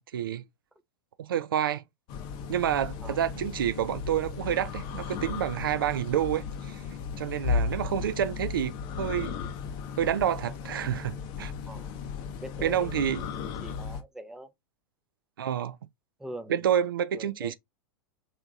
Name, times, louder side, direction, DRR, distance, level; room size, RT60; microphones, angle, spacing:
voice 1, 0.1-0.4 1.2-1.8 2.5-6.8 7.2-9.3 10.0-11.5 12.6-13.2 15.4-15.8 16.5-17.5, right 10 dB, 65° right, 0.4 m, -28 dB
sound 1, 2.1-14.0, left 6 dB, 40° left, 0.6 m, -35 dB
voice 2, 12.2-13.2 13.6-14.5 16.2-16.6 17.1-17.5, right 1 dB, 5° right, 0.5 m, -43 dB
3.4 x 2.9 x 2.3 m
figure-of-eight pair, 95°, 12 cm